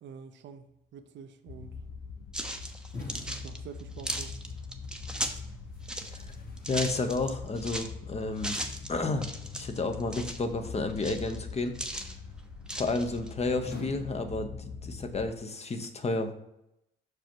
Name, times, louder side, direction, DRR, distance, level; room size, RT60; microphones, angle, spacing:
voice 1, 0.0-1.8 3.0-4.4, right 7 dB, 65° right, 9 dB, 0.6 m, -47 dB
sound 1, 1.5-15.3, left 4 dB, 80° left, 1.0 m, -43 dB
sound 2, 2.3-5.4 5.8-7.9 8.4-8.9 9.2-10.4 10.9-12.1 12.7-13.3, right 1 dB, 5° right, 0.8 m, -37 dB
sound 3, 2.9-4.4 5.7-7.8 10.4-11.3 13.6-15.1, left 3 dB, 50° left, 2.1 m, -46 dB
voice 2, 6.7-8.5 8.9-11.8 12.7-16.3, left 3 dB, 30° left, 7 dB, 0.9 m, -31 dB
5.9 x 4.9 x 4.5 m, 0.84 s
cardioid pair, 90°, 20 cm